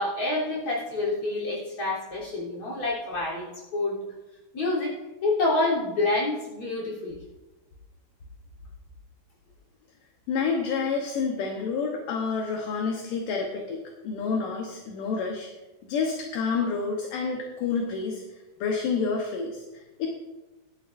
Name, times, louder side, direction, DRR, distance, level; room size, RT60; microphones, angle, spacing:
voice 1, 0.0-4.0 4.5-4.9 5.2-7.2, left 2 dB, 35° left, -5 dB, 4.1 m, -27 dB
voice 2, 10.3-15.5 15.8-18.2 18.6-20.1, left 5 dB, 65° left, 1 dB, 2.3 m, -29 dB
17.5 x 12.0 x 2.6 m, 1.1 s
omnidirectional pair, 4.7 m